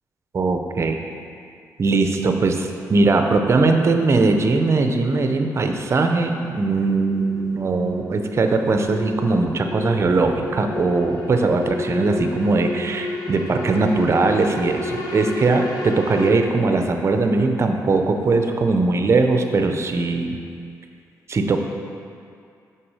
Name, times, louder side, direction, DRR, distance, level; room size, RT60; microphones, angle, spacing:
voice 1, 0.3-1.0 1.8-20.4 21.3-21.6, right 3 dB, 40° right, 5 dB, 0.6 m, -20 dB
sound 1, 6.3-16.3, left 2 dB, 75° left, 0.8 m, -31 dB
6.0 x 4.7 x 4.8 m, 2.4 s
cardioid pair, 75°, 7 cm